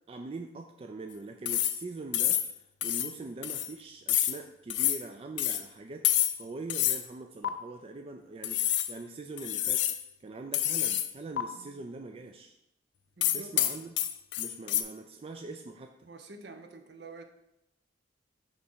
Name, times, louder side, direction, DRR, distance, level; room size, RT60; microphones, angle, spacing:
voice 1, 0.1-6.1 6.4-9.9 10.2-12.5 13.3-13.9 14.4-16.1, right 3 dB, 30° right, 5 dB, 0.3 m, -43 dB
sound 1, 1.5-1.8 2.1-2.5 2.8-3.1 3.4-3.7 4.1-4.4 4.7-5.0 5.4-5.6 6.0-6.4 6.7-7.0 7.4-7.5 8.4-8.9 9.4-10.0 10.5-11.1 11.4-11.5 13.2-14.8, left 12 dB, 70° left, 0.5 m, -28 dB
voice 2, 13.2-13.5 16.1-17.2, right 3 dB, 65° right, 6 dB, 0.7 m, -48 dB
6.3 x 3.3 x 5.5 m, 0.83 s
head